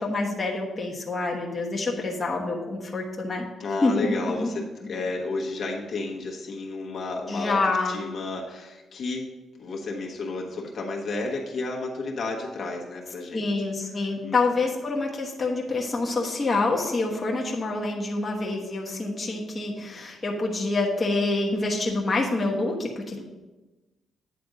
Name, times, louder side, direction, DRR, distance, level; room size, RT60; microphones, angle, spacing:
voice 1, 0.0-3.4 3.8-4.5 7.3-8.1 13.3-23.2, left 3 dB, 30° left, -2 dB, 1.2 m, -27 dB
voice 2, 3.6-7.6 7.8-9.3 9.6-13.5 14.2-14.3 23.2-23.3, left 3 dB, 55° left, -1 dB, 1.3 m, -32 dB
9.2 x 3.4 x 6.3 m, 1.1 s
cardioid pair, 105°, 0 cm